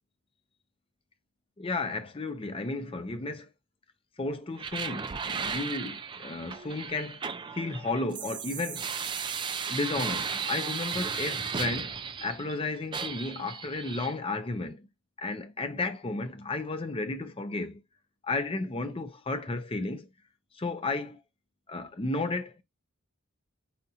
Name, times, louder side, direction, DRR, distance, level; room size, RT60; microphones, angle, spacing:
voice 1, 1.6-3.5 4.2-7.2 7.5-8.9 9.7-14.9 15.2-17.8 18.2-20.1 20.5-21.2 21.7-22.5, left 3 dB, 25° left, 0.6 m, -33 dB
sound 1, 4.6-12.6 12.9-14.1, right 6 dB, 20° right, 0.4 m, -35 dB
5.6 x 2.6 x 2.7 m
head